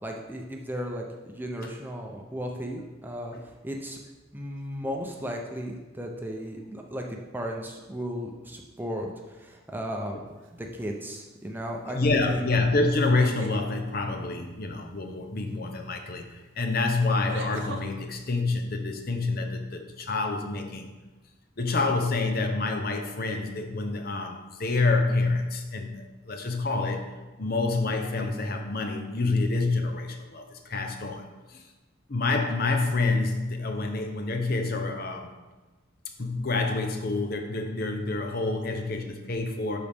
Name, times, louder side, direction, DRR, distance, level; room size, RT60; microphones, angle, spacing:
voice 1, 0.0-3.3 3.6-4.0 4.3-10.2 10.5-12.0 12.3-12.5, equal, 10° right, 1 dB, 0.6 m, -35 dB
sound 1, 10.4-10.8 13.0-13.6 15.9-16.0 17.3-17.8, right 3 dB, 70° right, 0.8 m, -39 dB
voice 2, 11.9-20.9 21.6-27.1 27.4-31.7 32.1-35.3 36.2-39.8, left 3 dB, 45° left, 5 dB, 0.7 m, -27 dB
12.0 x 4.1 x 3.5 m, 1.2 s
head